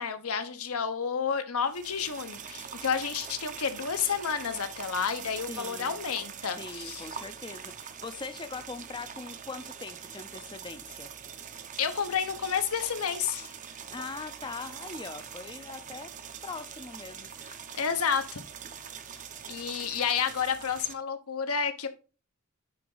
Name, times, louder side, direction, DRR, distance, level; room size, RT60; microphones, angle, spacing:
voice 1, 0.0-7.1 11.8-13.5 17.8-18.4 19.5-21.9, left 7 dB, 85° left, 8 dB, 0.9 m, -30 dB
sound 1, 1.7-20.9, right 7 dB, 35° right, 0.6 m, -43 dB
voice 2, 5.5-6.0 6.6-11.1 13.9-16.1 16.4-17.3, left 4 dB, 20° left, 9 dB, 0.4 m, -41 dB
9.6 x 3.9 x 3.9 m, 0.34 s
head